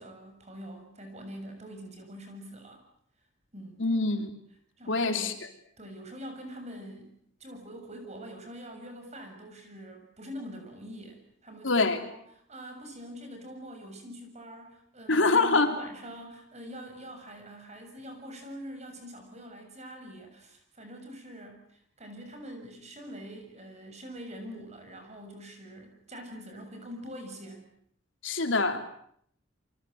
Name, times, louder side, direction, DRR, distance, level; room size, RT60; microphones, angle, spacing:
voice 1, 0.0-2.8 3.5-3.9 4.8-5.4 5.8-7.1 7.4-27.6, equal, 35° right, 5 dB, 6.8 m, -44 dB
voice 2, 3.8-4.3 4.9-5.3 11.6-12.0 15.1-15.7 28.2-28.8, left 3 dB, 75° left, 6 dB, 3.3 m, -24 dB
28.5 x 24.5 x 7.9 m, 0.67 s
head